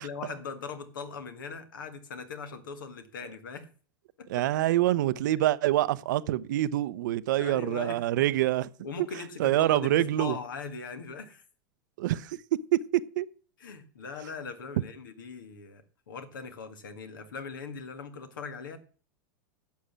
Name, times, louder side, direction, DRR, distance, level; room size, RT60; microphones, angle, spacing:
voice 1, 0.0-3.7 4.2-4.4 7.4-8.3 8.8-11.4 13.6-18.8, left 5 dB, 75° left, 1.9 m, -40 dB
voice 2, 4.3-8.7 9.4-10.4 12.0-12.4 12.7-13.3, right 14 dB, 65° right, 0.7 m, -26 dB
11.5 x 7.3 x 6.2 m
hypercardioid pair, 90°, 11 cm